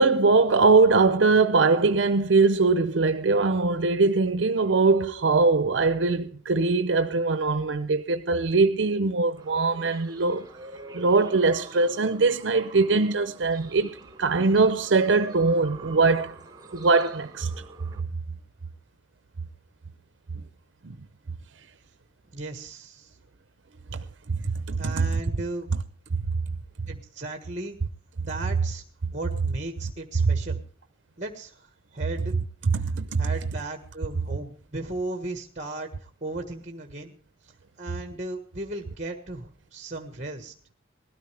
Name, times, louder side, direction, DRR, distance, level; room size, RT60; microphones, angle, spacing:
voice 1, 0.0-10.5 10.9-16.4 16.7-17.5 20.8-21.0 24.3-25.1 32.7-33.2, right 3 dB, 80° right, 0.7 m, -22 dB
sound 1, 9.4-18.0, right 2 dB, 20° right, 3.7 m, -45 dB
voice 2, 22.3-23.1 24.8-25.7 26.9-27.8 28.2-28.8 29.1-30.6 31.2-32.3 32.8-37.1 37.8-40.5, right 2 dB, 40° right, 1.5 m, -36 dB
20.0 x 13.0 x 3.4 m
head